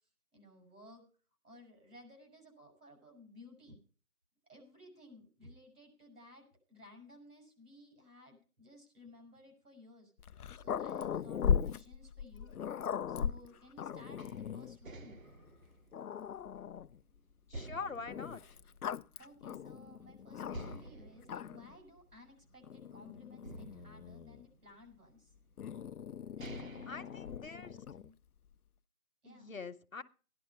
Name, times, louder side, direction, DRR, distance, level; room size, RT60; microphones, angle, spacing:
voice 1, 0.3-1.0 1.4-3.8 4.4-12.5 13.1-15.2 19.2-25.3 26.3-28.1 29.2-29.5, left 1 dB, 90° right, 3 dB, 7.2 m, -57 dB
Growling, 10.2-14.8 15.5-15.6 15.9-17.0 18.1-20.9 21.2-21.8 22.6-24.5 25.6-28.1, left 8 dB, 85° left, 0.5 m, -38 dB
sound 1, 14.2-17.0 17.5-19.5 19.8-19.9 20.5-22.9 23.4-25.0 25.8-25.9 26.2-28.0, right 2 dB, 65° right, 1.0 m, -51 dB
voice 2, 17.5-18.6 26.9-27.7 29.3-30.0, left 5 dB, 60° left, 11 dB, 1.0 m, -44 dB
14.5 x 11.0 x 5.7 m, 0.39 s
figure-of-eight pair, 175°, 44 cm